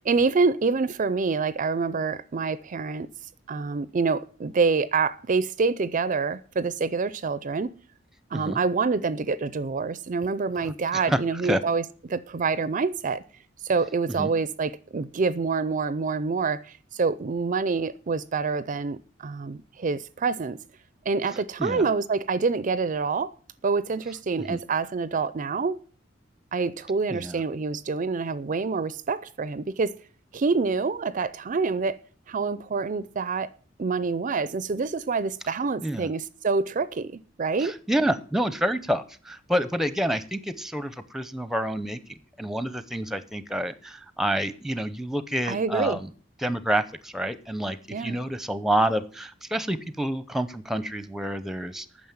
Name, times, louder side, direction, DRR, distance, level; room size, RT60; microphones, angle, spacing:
voice 1, 0.0-3.1 3.5-7.7 8.3-13.2 13.6-20.6 21.1-23.3 23.6-25.8 26.5-29.9 30.3-32.0 32.3-33.5 33.8-37.7 45.5-46.0 47.9-48.2, right 4 dB, 40° right, 0.5 m, -26 dB
voice 2, 10.9-11.6 14.2-14.3 21.6-21.8 24.5-24.6 27.1-27.4 35.8-36.1 37.6-42.0 42.4-46.1 46.4-51.9, right 1 dB, ahead, 0.7 m, -28 dB
9.5 x 6.3 x 8.6 m
head